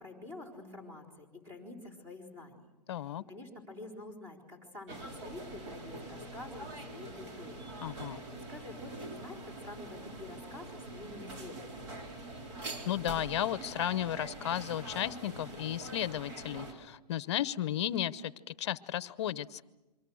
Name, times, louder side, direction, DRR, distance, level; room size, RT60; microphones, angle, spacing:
voice 1, 0.0-2.7 3.3-7.7 8.0-8.2 8.5-12.0, left 2 dB, 15° right, 1 dB, 4.0 m, -48 dB
voice 2, 2.9-3.2 7.8-8.2 12.9-19.6, left 11 dB, 40° left, 17 dB, 0.9 m, -34 dB
sound 1, 4.9-16.7, right 2 dB, 45° right, 3.9 m, -44 dB
28.5 x 24.0 x 6.4 m, 1.0 s
hypercardioid pair, 165°, 21 cm